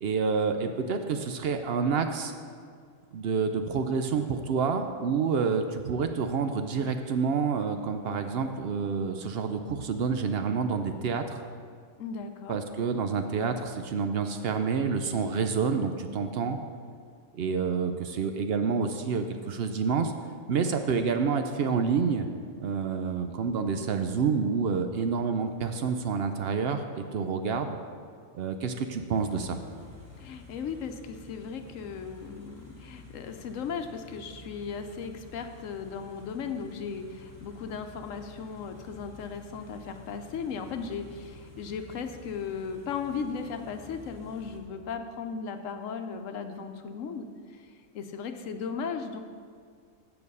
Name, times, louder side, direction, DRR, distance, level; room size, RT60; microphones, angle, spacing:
voice 1, 0.0-2.3 3.1-11.4 12.5-16.6 17.3-20.1 20.5-22.3 22.6-27.8 28.3-29.6, right 5 dB, 60° right, 7 dB, 0.7 m, -28 dB
voice 2, 12.0-12.6 30.2-47.3 47.5-49.2, left 5 dB, 80° left, 7 dB, 1.0 m, -36 dB
Car / Idling, 29.1-44.6, left 4 dB, 15° right, 1.0 m, -50 dB
8.5 x 6.9 x 5.4 m, 2.1 s
omnidirectional pair, 1.3 m